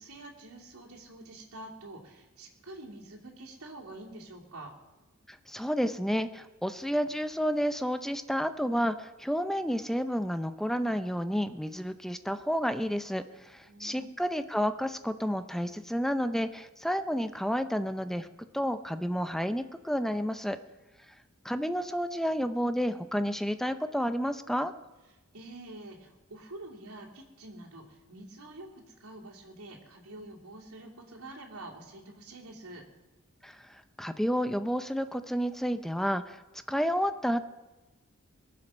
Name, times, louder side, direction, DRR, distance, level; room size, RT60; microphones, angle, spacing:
voice 1, 0.0-4.7 13.6-14.1 25.3-32.8, right 2 dB, 90° right, -4 dB, 2.8 m, -47 dB
voice 2, 5.3-18.3 18.5-20.6 21.4-24.7 33.4-36.4 36.7-37.4, equal, ahead, 10 dB, 0.6 m, -30 dB
22.0 x 7.7 x 6.3 m, 1.1 s
head